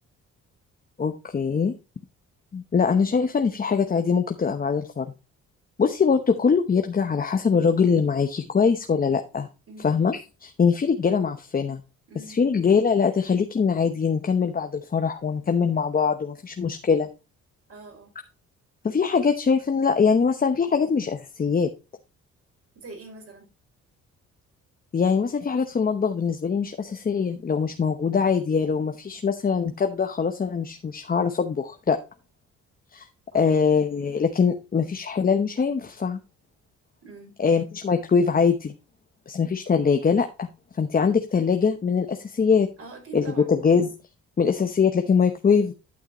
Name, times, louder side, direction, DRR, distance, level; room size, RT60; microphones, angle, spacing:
voice 1, 1.0-1.7 2.5-5.1 5.8-9.5 9.8-11.8 12.3-17.1 18.8-21.7 24.9-32.0 32.9-33.1 33.3-36.2 37.4-38.7 39.3-40.5 40.8-42.7 43.1-43.9 44.4-45.7, left 6 dB, 30° left, 6 dB, 0.9 m, -22 dB
voice 2, 12.1-12.4 17.7-18.1 22.8-23.5 33.3-33.8 37.0-37.4 42.8-43.5, right 3 dB, 50° right, 2 dB, 5.2 m, -43 dB
11.5 x 6.4 x 3.0 m, 0.29 s
cardioid pair, 90°, 30 cm